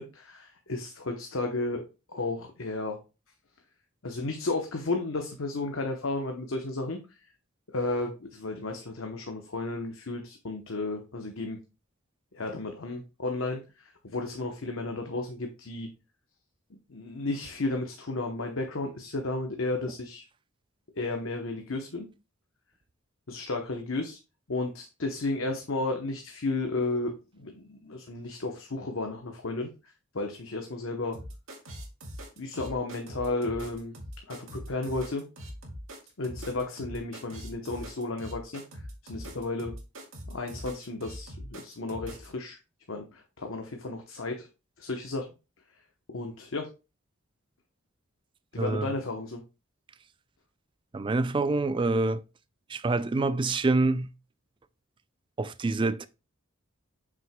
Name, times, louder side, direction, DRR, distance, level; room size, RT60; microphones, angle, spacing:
voice 1, 0.0-1.8 2.1-3.0 4.0-7.0 7.7-11.6 12.3-15.9 16.9-20.2 20.9-22.1 23.3-24.2 24.5-29.7 30.1-31.2 32.4-34.0 34.3-35.2 36.2-39.7 40.3-42.6 42.9-44.5 44.8-45.3 46.1-46.7 48.5-49.4, left 2 dB, 70° left, 0.9 m, -33 dB
sound 1, 31.1-42.3, equal, 70° right, 2.0 m, -42 dB
voice 2, 48.6-48.9 50.9-52.2 52.7-54.1 55.4-56.1, right 3 dB, 25° right, 0.3 m, -26 dB
7.5 x 6.1 x 2.2 m
head